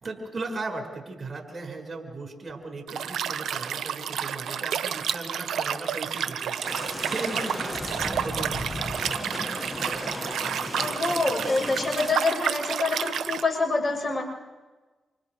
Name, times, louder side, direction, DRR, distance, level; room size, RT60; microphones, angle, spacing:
voice 1, 0.0-6.8 7.1-9.4, right 3 dB, 50° right, 2 dB, 4.9 m, -37 dB
Liquid, 2.9-13.4, right 8 dB, 75° right, 1.0 m, -30 dB
sound 1, 6.6-12.1, left 2 dB, 20° left, 1.6 m, -35 dB
voice 2, 10.7-14.2, left 3 dB, 35° left, 0 dB, 7.2 m, -26 dB
29.0 x 27.5 x 3.3 m, 1.2 s
supercardioid pair, 50°, 0 cm